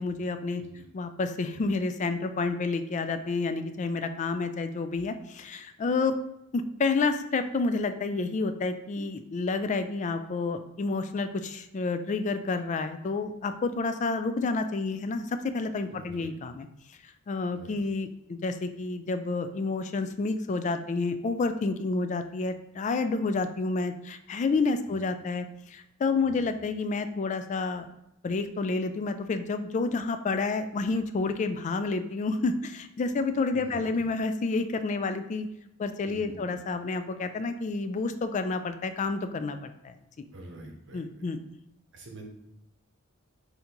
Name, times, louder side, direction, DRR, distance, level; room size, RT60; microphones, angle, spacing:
voice 1, 0.0-0.6 0.9-6.2 6.5-16.7 17.3-25.5 25.7-27.9 28.2-35.5 35.8-39.6 39.8-39.9 40.9-41.4, left 3 dB, 35° left, 9 dB, 0.3 m, -29 dB
voice 2, 15.9-16.3 17.5-17.8 24.9-25.0 26.2-26.5 33.5-34.0 36.0-36.5 40.3-41.3 41.9-42.3, right 2 dB, 60° right, 1 dB, 0.9 m, -46 dB
3.8 x 2.8 x 4.4 m, 0.82 s
head